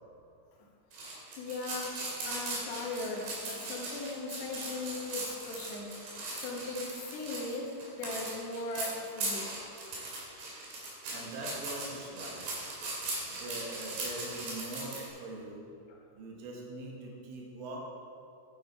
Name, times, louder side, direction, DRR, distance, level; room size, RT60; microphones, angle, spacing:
sound 1, 0.9-15.1, right 2 dB, 55° right, 4.2 m, -39 dB
voice 1, 1.4-9.6 15.9-16.0, left 3 dB, 80° left, -3 dB, 4.4 m, -39 dB
voice 2, 11.1-12.5 13.2-15.7 16.1-17.9, right 1 dB, 75° right, -2 dB, 4.1 m, -42 dB
11.0 x 11.0 x 4.6 m, 2.5 s
omnidirectional pair, 5.9 m